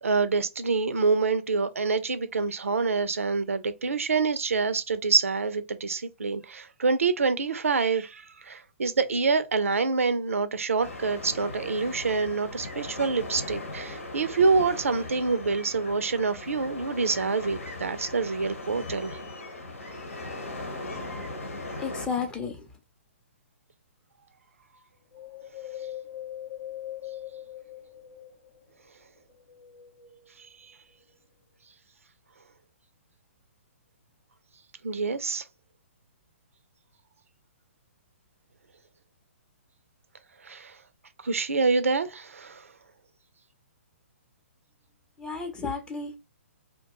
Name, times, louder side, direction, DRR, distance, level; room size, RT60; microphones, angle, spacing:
voice 1, 0.0-19.2 30.4-30.5 34.8-35.4 40.4-40.8 41.2-42.7, right 4 dB, 80° right, 0.5 m, -26 dB
sound 1, 10.8-22.1, left 2 dB, 80° left, 0.9 m, -39 dB
voice 2, 21.8-22.7 45.2-46.1, left 5 dB, 10° left, 0.5 m, -32 dB
Wind, 25.1-28.7 29.2-30.5 31.0-31.1, left 12 dB, 60° left, 0.6 m, -41 dB
2.5 x 2.2 x 2.9 m
hypercardioid pair, 130°, 7 cm